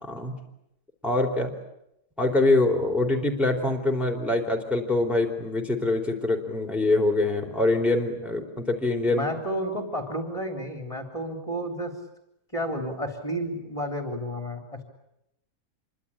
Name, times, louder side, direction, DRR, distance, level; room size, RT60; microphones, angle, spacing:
voice 1, 0.0-0.3 1.0-1.5 2.2-9.3, left 2 dB, ahead, 1 dB, 3.8 m, -24 dB
voice 2, 9.1-11.9 12.5-14.8, equal, 20° left, 5 dB, 3.9 m, -31 dB
27.0 x 24.0 x 8.8 m, 0.82 s
omnidirectional pair, 1.7 m